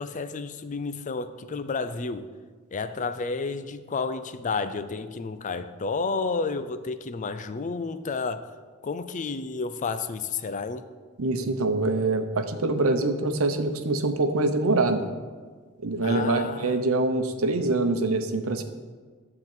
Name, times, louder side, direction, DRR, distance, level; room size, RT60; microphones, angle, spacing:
voice 1, 0.0-2.3 2.7-8.5 8.8-10.8 16.0-16.9, left 4 dB, 35° left, 11 dB, 0.4 m, -31 dB
voice 2, 11.2-15.1 15.8-18.6, right 2 dB, 85° right, 7 dB, 0.8 m, -24 dB
11.5 x 3.9 x 7.3 m, 1.5 s
head